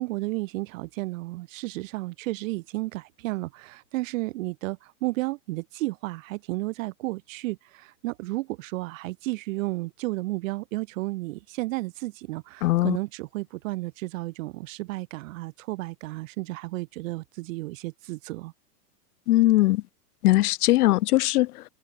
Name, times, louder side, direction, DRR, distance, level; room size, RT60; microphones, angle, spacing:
voice 1, 0.0-18.5, right 20 dB, 50° right, 2.2 m, -32 dB
voice 2, 12.6-13.0 19.3-19.8 20.2-21.6, left 17 dB, 65° left, 0.5 m, -20 dB
hypercardioid pair, 130°, 49 cm